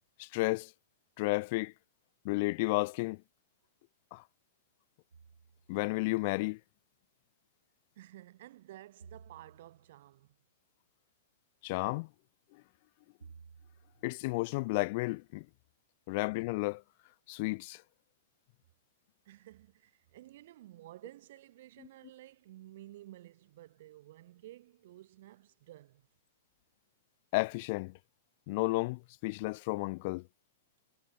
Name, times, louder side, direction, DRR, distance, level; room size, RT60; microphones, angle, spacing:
voice 1, 0.2-0.7 1.2-1.7 2.2-3.2 4.1-4.2 5.7-6.6 11.6-12.1 14.0-15.5 16.1-16.8 17.3-17.8 27.3-27.9 28.5-30.2, left 25 dB, 50° left, 0.8 m, -32 dB
sound 1, 5.1-5.9 9.0-10.1 13.2-14.1, right 5 dB, 80° right, 3.9 m, -56 dB
voice 2, 8.0-10.4 19.2-26.0, right 15 dB, 55° right, 4.8 m, -53 dB
figure-of-eight pair, 105°, 0 cm